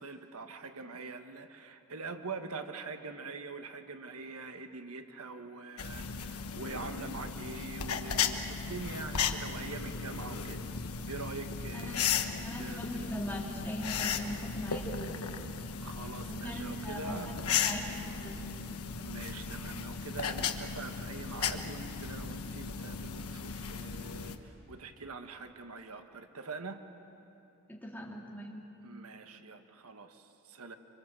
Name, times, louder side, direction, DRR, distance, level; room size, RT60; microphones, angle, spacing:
voice 1, 0.0-10.6 11.1-12.3 12.6-13.1 15.8-17.5 19.0-26.8 28.8-30.8, right 3 dB, 75° right, 7 dB, 1.4 m, -44 dB
sound 1, 5.8-24.4, left 6 dB, 80° left, 1.3 m, -36 dB
voice 2, 11.7-12.1 12.4-15.3 16.3-17.3 17.6-18.4 27.7-28.6, equal, 10° left, -2 dB, 3.2 m, -40 dB
26.0 x 25.0 x 7.7 m, 2.9 s
head